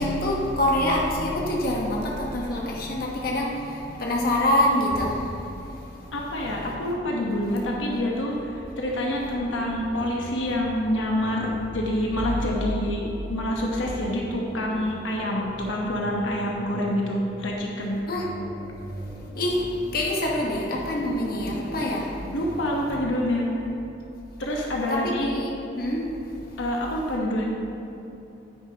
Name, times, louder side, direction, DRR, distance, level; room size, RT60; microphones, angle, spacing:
voice 1, 0.0-6.2 12.5-12.7 18.1-18.3 19.4-22.2 24.9-26.0, left 1 dB, 50° left, -3 dB, 1.2 m, -26 dB
voice 2, 6.1-13.0 13.3-18.0 22.3-23.5 24.4-25.3 26.6-27.4, left 1 dB, 80° left, -2 dB, 1.1 m, -27 dB
sound 1, 6.4-23.0, equal, 5° right, 1.9 m, -41 dB
9.3 x 9.2 x 2.9 m, 2.9 s
head